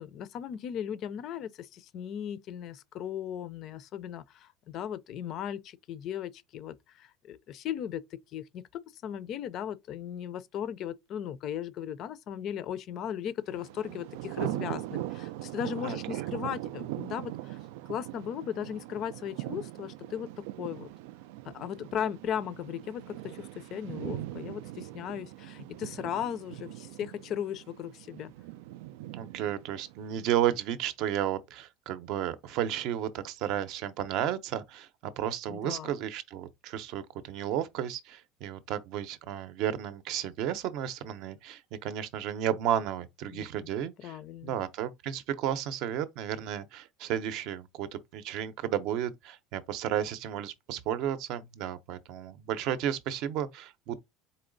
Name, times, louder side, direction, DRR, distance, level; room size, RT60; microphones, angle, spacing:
voice 1, 0.0-8.0 8.3-17.6 17.9-20.9 21.5-28.3 35.5-35.9 43.3-43.5 44.0-44.5, left 9 dB, 40° left, 0.4 m, -37 dB
Thunder, 13.5-30.5, right 15 dB, 90° right, 0.3 m, -40 dB
voice 2, 15.8-16.3 29.1-54.1, right 10 dB, 50° right, 0.6 m, -33 dB
4.3 x 3.0 x 3.9 m
cardioid pair, 175°, 0 cm